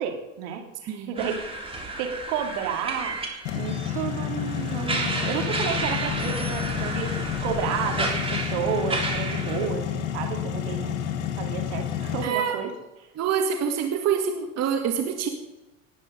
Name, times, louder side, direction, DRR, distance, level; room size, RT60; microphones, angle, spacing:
voice 1, 0.0-1.4 2.0-11.1 11.3-12.7, right 7 dB, 65° right, 3 dB, 2.8 m, -31 dB
sound 1, 1.2-9.7, right 3 dB, 15° right, 3.4 m, -32 dB
sound 2, 3.4-12.2, left 9 dB, 65° left, 2.4 m, -30 dB
voice 2, 12.2-12.6 13.2-15.3, right 7 dB, 40° right, 4 dB, 2.0 m, -26 dB
19.0 x 9.5 x 5.2 m, 1.0 s
hypercardioid pair, 85°, 40 cm